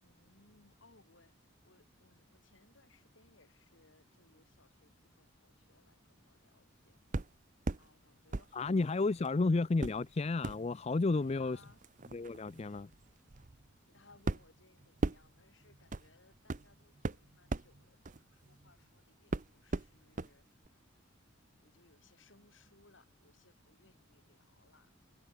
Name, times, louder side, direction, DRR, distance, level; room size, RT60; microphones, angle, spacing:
voice 1, 0.0-7.1 7.8-9.5 11.1-11.9 13.9-20.5 21.6-24.9, left 3 dB, 65° left, 4.7 m, -66 dB
sound 1, 7.1-7.9 8.3-9.3 9.8-18.9 19.3-20.3 20.6-20.7, right 2 dB, 40° right, 0.7 m, -40 dB
voice 2, 8.5-11.6 12.1-12.9, left 3 dB, 30° left, 0.4 m, -32 dB
head